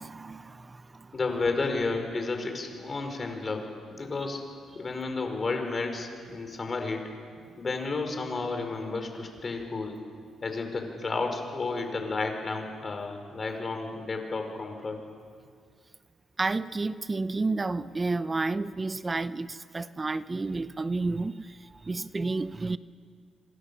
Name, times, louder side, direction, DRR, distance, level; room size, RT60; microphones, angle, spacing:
voice 1, 0.0-1.2 16.4-22.8, right 3 dB, 25° right, 14 dB, 0.7 m, -31 dB
voice 2, 1.1-4.4 4.7-7.1 7.6-10.0 10.4-15.0, left 3 dB, 35° left, 4 dB, 5.1 m, -32 dB
27.5 x 26.0 x 7.1 m, 2.1 s
cardioid pair, 90°, 0 cm